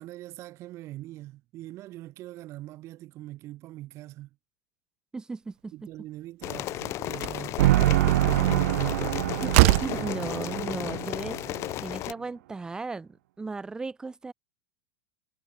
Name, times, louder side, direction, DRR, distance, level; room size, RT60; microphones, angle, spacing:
voice 1, 0.0-4.3 5.7-9.1, right 16 dB, 30° right, 3.5 m, -43 dB
voice 2, 5.1-5.7 9.4-9.5 9.8-11.4 11.8-13.1 13.4-14.3, right 3 dB, 10° right, 1.6 m, -36 dB
sound 1, 6.4-12.1, left 16 dB, 30° left, 2.2 m, -34 dB
Slam, 6.5-6.6 7.1-7.5 9.0-9.1 9.5-10.0, right 26 dB, 45° right, 0.8 m, -21 dB
sound 2, 7.6-11.7, right 16 dB, 75° right, 0.5 m, -25 dB
supercardioid pair, 170°, 10 cm